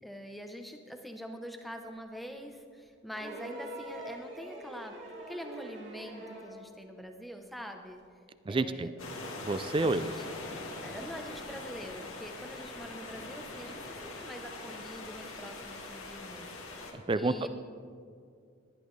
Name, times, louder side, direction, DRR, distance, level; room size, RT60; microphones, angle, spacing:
voice 1, 0.0-5.0 5.3-8.0 8.5-8.9 9.8-10.2 10.8-17.5, equal, ahead, 4 dB, 0.8 m, -45 dB
sound 1, 3.1-6.6 8.0-8.1, right 1 dB, 60° right, 2.5 m, -44 dB
voice 2, 8.5-8.9 9.5-10.0 16.9-17.5, right 2 dB, 25° right, 13 dB, 0.3 m, -29 dB
sound 2, 9.0-16.9, left 2 dB, 90° left, 1.9 m, -42 dB
19.0 x 11.0 x 3.2 m, 2.3 s
head